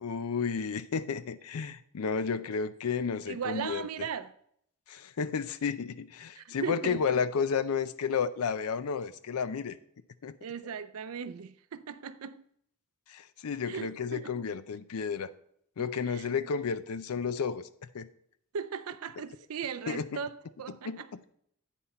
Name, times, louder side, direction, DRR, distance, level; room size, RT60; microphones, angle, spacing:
voice 1, 0.0-4.1 4.9-9.8 10.2-10.4 13.1-15.3 15.8-17.7 17.9-18.1 19.9-20.1 20.9-21.0, left 6 dB, 75° left, 0.5 m, -32 dB
voice 2, 3.3-4.3 6.3-7.1 10.4-12.4 13.7-14.4 16.1-16.3 18.5-21.1, right 6 dB, 75° right, 0.5 m, -38 dB
8.3 x 5.9 x 4.2 m
head